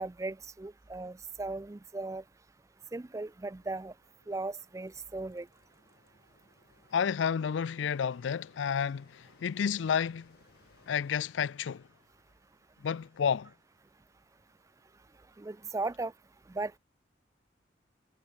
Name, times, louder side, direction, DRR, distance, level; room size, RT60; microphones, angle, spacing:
voice 1, 0.0-2.2 2.9-3.9 4.3-5.5 15.4-16.1 16.5-16.7, right 3 dB, 15° right, 0.3 m, -37 dB
Engine, 3.0-11.5, left 2 dB, 55° left, 3.5 m, -66 dB
voice 2, 6.9-10.3 10.9-11.8 12.8-13.5, left 7 dB, 90° left, 0.4 m, -30 dB
head